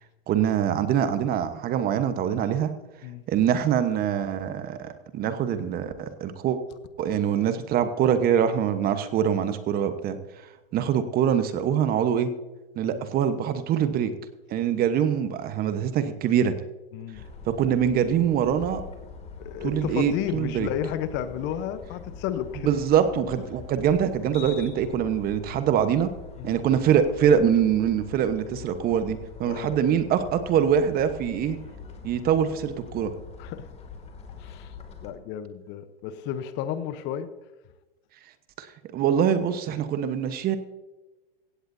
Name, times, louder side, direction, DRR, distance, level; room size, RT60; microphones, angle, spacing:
voice 1, 0.3-2.7 3.3-6.6 7.0-10.2 10.7-12.3 12.8-14.1 14.5-16.5 17.5-18.8 19.6-20.7 22.6-26.1 26.4-31.6 32.0-33.1 38.6-38.7 38.9-40.6, right 8 dB, 30° right, 10 dB, 1.1 m, -24 dB
voice 2, 16.9-17.3 19.4-22.7 26.4-26.6 29.4-29.7 33.4-33.7 34.4-34.7 35.0-37.3, left 10 dB, 35° left, 12 dB, 0.9 m, -32 dB
sound 1, 17.1-35.1, left 5 dB, 20° left, 2.4 m, -43 dB
16.5 x 16.0 x 2.7 m, 1.1 s
hypercardioid pair, 115°, 31 cm